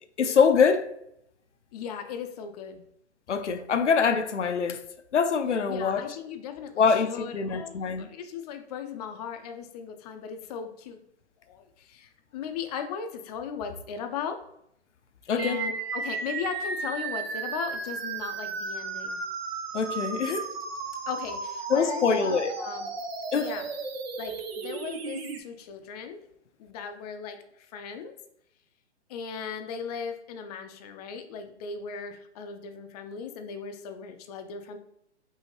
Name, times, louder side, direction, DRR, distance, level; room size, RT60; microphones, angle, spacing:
voice 1, 0.2-0.9 3.3-4.8 5.1-6.1 6.8-8.1 15.3-15.6 19.7-20.5 21.7-22.6 23.3-23.5, left 6 dB, 90° left, 9 dB, 0.6 m, -24 dB
voice 2, 1.7-2.8 5.7-11.0 11.5-14.4 15.3-19.2 21.1-22.9 23.3-23.7 24.2-26.2 26.6-28.1 29.1-34.8, left 6 dB, 35° left, 7 dB, 0.6 m, -37 dB
sound 1, 15.4-25.4, right 4 dB, 60° right, 0.8 m, -34 dB
5.4 x 2.8 x 3.0 m, 0.76 s
hypercardioid pair, 125°, 35 cm